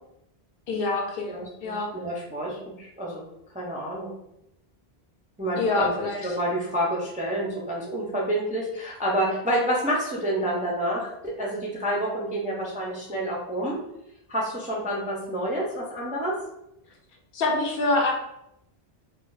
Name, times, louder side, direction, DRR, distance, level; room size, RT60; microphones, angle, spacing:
voice 1, 0.7-1.9 5.6-6.2 17.3-18.1, left 2 dB, 65° left, 1 dB, 0.7 m, -25 dB
voice 2, 1.3-3.2 3.5-4.2 5.4-5.9 6.2-13.8 14.3-16.3, equal, 10° right, -3 dB, 0.3 m, -28 dB
2.3 x 2.1 x 3.8 m, 0.82 s
omnidirectional pair, 1.0 m